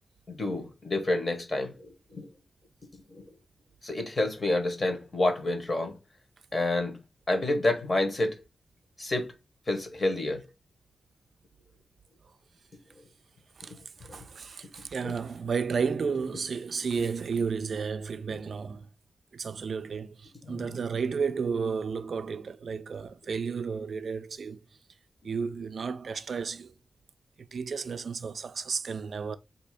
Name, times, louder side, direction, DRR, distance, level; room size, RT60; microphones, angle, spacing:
voice 1, 0.3-2.3 3.1-3.2 3.8-6.0 6.5-7.0 7.3-8.4 9.0-9.3 9.7-10.4 14.0-14.2 15.0-15.1 20.4-20.8, left 2 dB, 35° left, 1.1 m, -29 dB
voice 2, 13.6-18.9 19.3-24.6 25.2-26.7 27.5-29.4, right 5 dB, 60° right, 0.3 m, -32 dB
3.5 x 2.7 x 4.7 m
wide cardioid pair, 135°, 0 cm